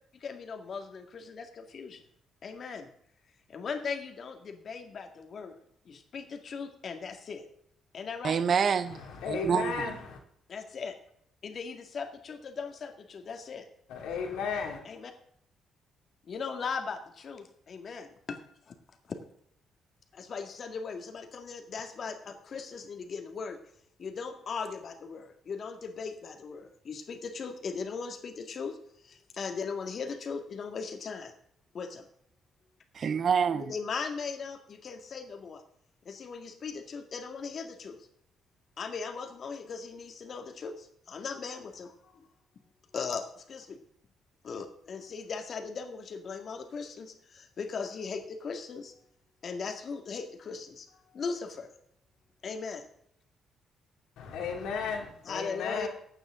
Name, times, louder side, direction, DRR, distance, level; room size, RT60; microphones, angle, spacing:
voice 1, 0.2-2.0 2.4-2.9 3.5-5.6 5.9-7.4 7.9-8.4 10.5-10.9 11.4-13.7 14.8-15.1 16.3-18.4 18.7-18.8 19.1-19.2 20.1-23.6 24.0-28.8 29.0-31.3 31.7-32.0 33.7-35.6 36.1-38.1 38.8-42.3 42.9-43.8 44.4-48.9 49.4-51.7 52.4-52.9 55.2-55.9, left 5 dB, 50° left, 2.1 m, -38 dB
voice 2, 8.2-9.0 9.3-9.9 32.9-33.7, right 6 dB, 50° right, 0.8 m, -27 dB
voice 3, 8.8-10.2 13.9-14.8 54.2-55.9, left 5 dB, 85° left, 2.8 m, -34 dB
15.0 x 9.0 x 3.8 m
cardioid pair, 90°, 0 cm